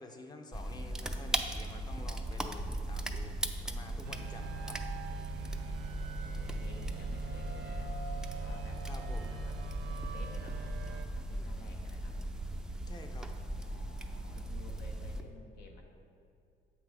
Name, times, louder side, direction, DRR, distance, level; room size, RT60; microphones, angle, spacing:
voice 1, 0.0-4.8 8.9-9.4 12.9-13.3, left 2 dB, 25° left, 4 dB, 0.8 m, -50 dB
sound 1, 0.5-15.2, right 1 dB, 5° right, 0.5 m, -38 dB
voice 2, 0.7-1.2 3.7-4.5 5.3-8.0 8.3-8.9 9.1-12.2 13.4-15.8, left 3 dB, 70° left, 2 dB, 1.2 m, -55 dB
sound 2, 4.0-11.0, right 6 dB, 85° right, 0.7 m, -44 dB
7.4 x 5.9 x 4.8 m, 2.6 s
cardioid pair, 110°, 17 cm